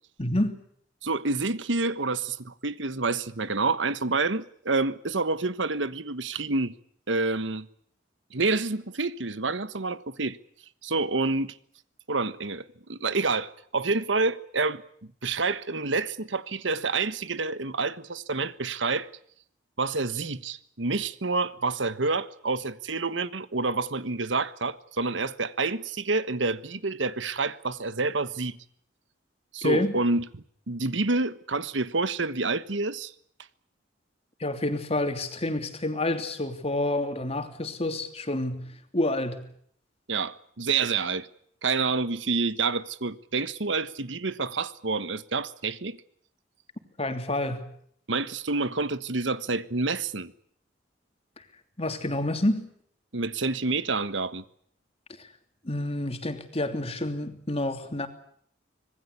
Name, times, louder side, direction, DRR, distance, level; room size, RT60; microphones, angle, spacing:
voice 1, 0.2-0.6 29.6-29.9 34.4-38.7 38.9-39.5 47.0-47.7 51.8-52.7 55.2-55.3 55.6-58.1, left 1 dB, 35° left, 3.0 m, -28 dB
voice 2, 1.0-6.7 7.1-7.7 8.3-10.4 10.8-11.6 12.1-14.8 15.2-19.1 19.8-28.6 29.5-30.2 30.7-33.1 40.1-41.3 41.6-46.0 48.1-50.3 53.1-54.4, right 3 dB, 80° right, 1.4 m, -28 dB
26.0 x 20.5 x 8.4 m
head